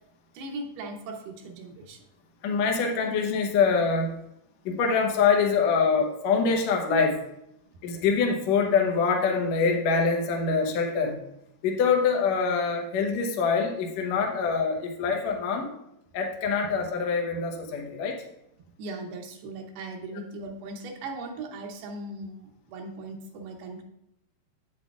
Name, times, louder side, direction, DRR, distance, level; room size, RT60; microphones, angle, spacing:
voice 1, 0.3-2.0 18.8-23.8, right 2 dB, 80° right, 2 dB, 2.7 m, -38 dB
voice 2, 2.4-4.1 4.6-7.2 7.8-11.2 11.6-15.7 16.1-18.2, left 5 dB, 90° left, 1 dB, 1.5 m, -24 dB
8.3 x 8.2 x 2.4 m, 0.82 s
omnidirectional pair, 4.6 m